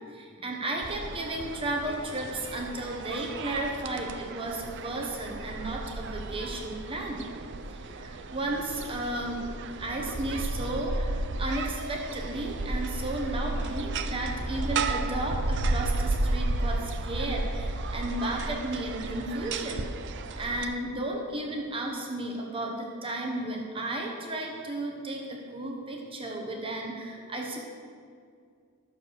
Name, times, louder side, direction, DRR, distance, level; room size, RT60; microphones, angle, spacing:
voice 1, 0.1-7.3 7.6-19.9 20.1-27.6, right 1 dB, 25° right, 0 dB, 1.2 m, -34 dB
sound 1, 0.8-20.6, right 2 dB, 55° right, 0.6 m, -33 dB
12.0 x 6.9 x 6.5 m, 2.2 s
head